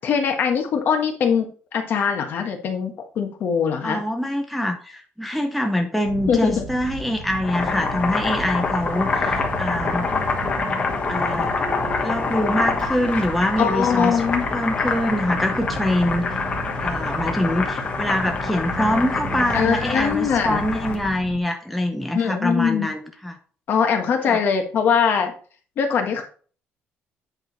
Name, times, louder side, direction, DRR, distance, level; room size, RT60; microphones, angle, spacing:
voice 1, 0.0-4.0 6.3-6.6 13.6-14.4 19.5-20.6 22.1-22.9 23.7-25.3 25.8-26.2, left 7 dB, 50° left, 4 dB, 1.4 m, -22 dB
voice 2, 3.8-10.1 11.1-11.5 12.0-16.4 16.8-23.3 24.3-24.4, left 1 dB, ahead, 3 dB, 0.7 m, -24 dB
sound 1, 6.0-21.4, right 3 dB, 60° right, 1.3 m, -35 dB
Boiling, 7.3-21.1, left 4 dB, 30° left, 1.3 m, -26 dB
8.6 x 4.9 x 4.0 m, 0.41 s
cardioid pair, 160°, 4 cm